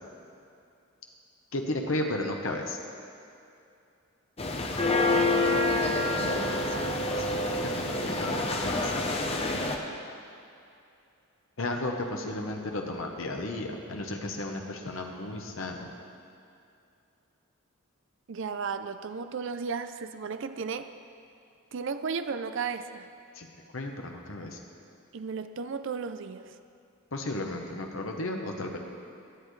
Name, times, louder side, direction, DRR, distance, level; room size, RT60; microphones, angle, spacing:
voice 1, 1.5-2.8 7.2-7.4 7.8-9.0 11.6-15.9 23.3-23.5 23.7-24.6 27.1-28.8, left 2 dB, 65° left, 2 dB, 1.1 m, -34 dB
sound 1, 4.4-9.8, left 2 dB, 30° left, 0.8 m, -27 dB
voice 2, 5.5-6.8 18.3-20.9 21.7-23.1 25.1-26.5, right 5 dB, 60° right, 10 dB, 0.5 m, -35 dB
17.0 x 10.5 x 3.2 m, 2.6 s
head